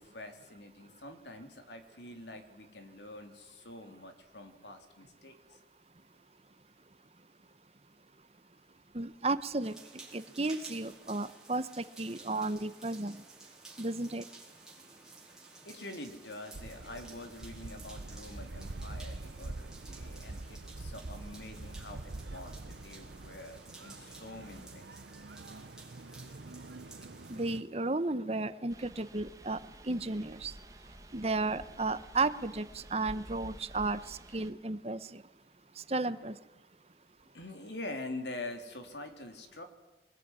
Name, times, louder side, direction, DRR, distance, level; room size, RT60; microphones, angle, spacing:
voice 1, 0.0-5.6 15.4-25.0 25.4-25.5 37.3-39.6, left 2 dB, 85° left, 6 dB, 3.5 m, -46 dB
voice 2, 8.9-9.8 10.1-13.2 13.8-14.2 27.3-30.5 31.1-35.2 35.8-36.4, right 3 dB, 35° right, 14 dB, 1.0 m, -33 dB
sound 1, 9.6-27.6, right 3 dB, 5° right, 4.4 m, -54 dB
sound 2, 16.5-27.6, right 2 dB, 80° right, 0.9 m, -45 dB
sound 3, 28.7-34.5, right 1 dB, 20° right, 1.7 m, -51 dB
24.0 x 20.0 x 9.9 m, 1.1 s
head